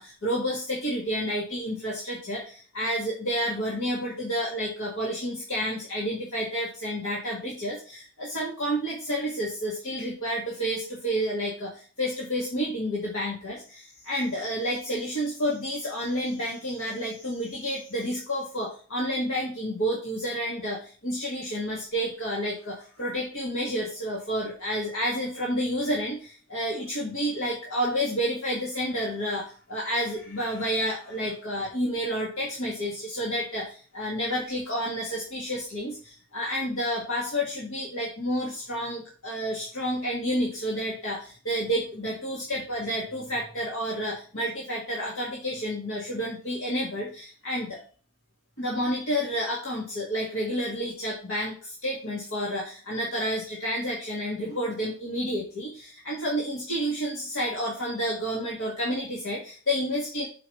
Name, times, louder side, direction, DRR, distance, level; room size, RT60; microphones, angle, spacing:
voice 1, 0.0-47.8 48.6-60.3, equal, 80° left, -3 dB, 1.8 m, -30 dB
6.3 x 4.6 x 4.7 m, 0.40 s
head